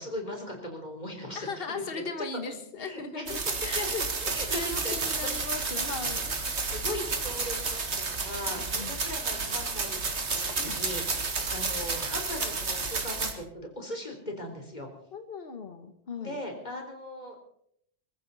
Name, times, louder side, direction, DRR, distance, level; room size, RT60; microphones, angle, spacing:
voice 1, 0.0-2.0 2.5-3.9 4.2-5.1 5.5-5.6 6.6-10.2 10.4-14.9 16.2-17.4, left 1 dB, 40° left, 2 dB, 3.7 m, -39 dB
voice 2, 1.3-6.4 8.7-9.0 10.6-10.8 15.1-16.4, left 4 dB, 55° left, 7 dB, 1.6 m, -38 dB
sound 1, 3.3-13.3, right 4 dB, 70° right, 2.1 m, -31 dB
22.5 x 14.5 x 4.1 m, 0.70 s
omnidirectional pair, 1.2 m